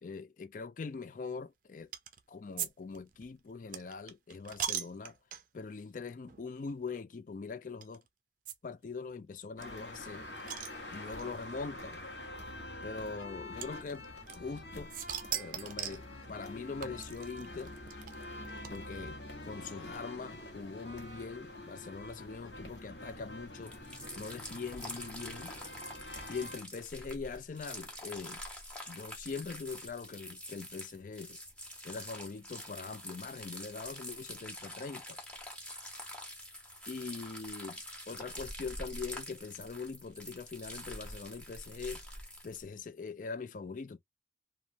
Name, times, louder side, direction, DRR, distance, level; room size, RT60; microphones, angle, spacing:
voice 1, 0.0-1.9 2.3-5.2 5.5-8.0 8.6-10.3 10.9-12.0 12.8-14.1 14.3-14.9 15.3-17.8 18.7-23.8 24.2-25.6 26.3-28.4 28.9-31.4 31.8-35.2 36.9-37.8 38.1-42.0 42.4-44.0, left 4 dB, 45° left, 0.4 m, -42 dB
sound 1, 1.9-2.2 2.6-2.7 2.9-5.7 6.3-6.4 6.7-6.8 7.8-8.0 8.5-8.6 8.8-8.9 9.1-9.2 9.6-11.3 12.2-12.3 13.6-14.6 14.9-16.1 16.8-19.1, right 9 dB, 45° right, 0.4 m, -40 dB
sound 2, 9.6-26.6, left 1 dB, 65° left, 1.0 m, -46 dB
sound 3, 23.6-42.6, equal, 5° left, 0.8 m, -46 dB
3.1 x 2.3 x 2.6 m
head